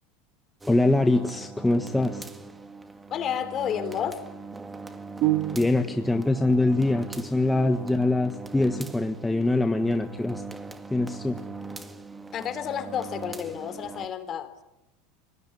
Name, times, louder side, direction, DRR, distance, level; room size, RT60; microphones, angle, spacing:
sound 1, 0.6-14.1, right 3 dB, 10° right, 1.8 m, -41 dB
voice 1, 0.7-2.3 5.5-10.4 10.9-11.4, left 2 dB, 5° left, 6 dB, 1.5 m, -23 dB
voice 2, 3.1-4.3 12.3-14.5, left 9 dB, 35° left, 11 dB, 3.6 m, -31 dB
sound 2, 5.2-6.2, right 17 dB, 55° right, 2.3 m, -27 dB
28.0 x 19.5 x 10.0 m, 0.92 s
supercardioid pair, 115°, 0 cm